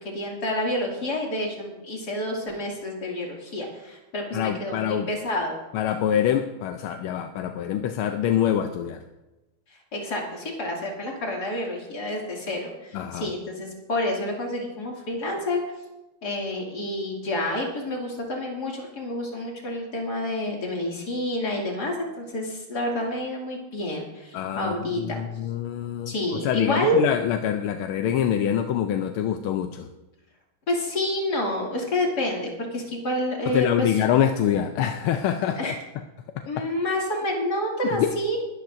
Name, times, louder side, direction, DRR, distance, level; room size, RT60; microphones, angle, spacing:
voice 1, 0.0-5.5 9.9-15.6 16.2-25.0 26.1-27.0 30.7-34.0 35.6-35.8 36.4-38.4, left 1 dB, 50° left, -1 dB, 3.1 m, -29 dB
voice 2, 4.3-5.1 5.7-9.0 12.9-13.3 24.3-26.1 26.4-29.9 33.5-35.7 37.8-38.1, left 9 dB, 85° left, 6 dB, 1.5 m, -25 dB
21.5 x 13.0 x 2.6 m, 1.1 s
omnidirectional pair, 2.3 m